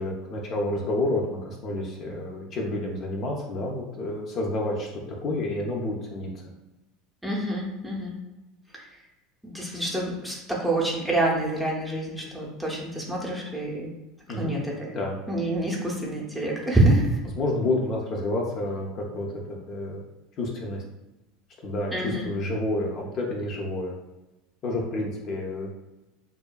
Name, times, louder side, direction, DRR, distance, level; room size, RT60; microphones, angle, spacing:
voice 1, 0.0-6.4 14.3-14.6 14.9-15.1 17.4-19.3 19.7-20.0 20.4-20.8 21.6-23.9 24.6-25.7, left 2 dB, 45° left, -1 dB, 0.5 m, -29 dB
voice 2, 7.2-8.2 8.7-8.8 9.4-13.9 14.4-14.9 15.3-17.1 21.9-22.3, right 1 dB, 5° right, -3 dB, 0.7 m, -26 dB
2.6 x 2.3 x 2.2 m, 1.0 s
supercardioid pair, 105°, 0 cm